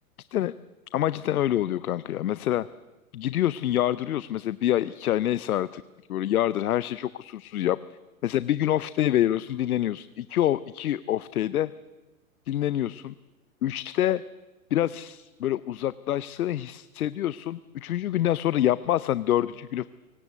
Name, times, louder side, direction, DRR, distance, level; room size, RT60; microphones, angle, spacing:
voice 1, 0.9-2.7 3.1-5.8 6.1-7.8 8.2-11.7 12.5-13.1 13.6-14.2 14.7-19.9, left 12 dB, 80° left, 17 dB, 0.7 m, -26 dB
24.5 x 17.5 x 8.2 m, 1.1 s
hypercardioid pair, 120°, 43 cm